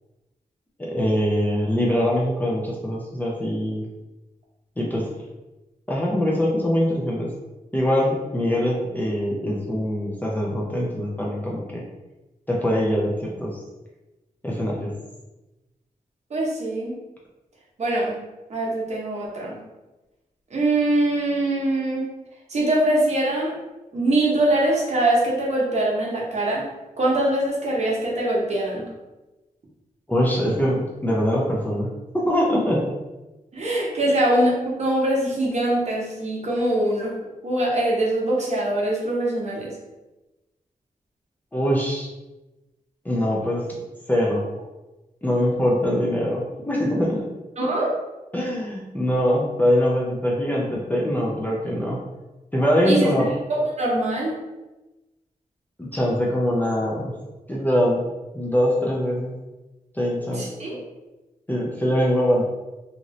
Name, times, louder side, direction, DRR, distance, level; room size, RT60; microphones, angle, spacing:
voice 1, 0.8-3.9 4.8-5.1 5.9-7.3 7.7-11.8 12.5-13.6 14.4-14.9 30.1-31.9 32.3-32.9 41.5-42.1 43.0-43.6 44.1-44.4 45.2-47.3 48.3-52.0 52.5-53.3 55.8-57.1 57.5-58.0 58.3-59.3 59.9-60.4 61.5-62.5, equal, 10° left, -4 dB, 0.5 m, -23 dB
voice 2, 16.3-16.9 17.8-18.2 18.5-19.6 20.5-22.0 22.5-23.5 23.9-26.7 27.0-28.8 33.5-37.2 37.4-39.7 47.6-47.9 52.8-53.1 53.6-54.3 60.3-60.8, right 1 dB, 50° right, -4 dB, 0.9 m, -23 dB
2.7 x 2.5 x 3.0 m, 1.1 s
wide cardioid pair, 140°, 15 cm